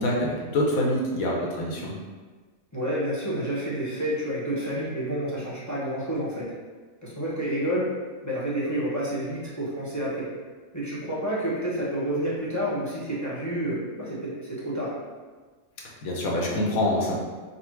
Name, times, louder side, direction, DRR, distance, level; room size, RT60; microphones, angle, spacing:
voice 1, 0.0-1.9 16.0-17.2, left 1 dB, 75° left, -2 dB, 1.2 m, -25 dB
voice 2, 2.7-6.5 7.0-7.9 8.2-10.3 10.7-14.9, right 1 dB, 15° left, -8 dB, 0.7 m, -29 dB
4.1 x 2.0 x 4.4 m, 1.4 s
omnidirectional pair, 1.5 m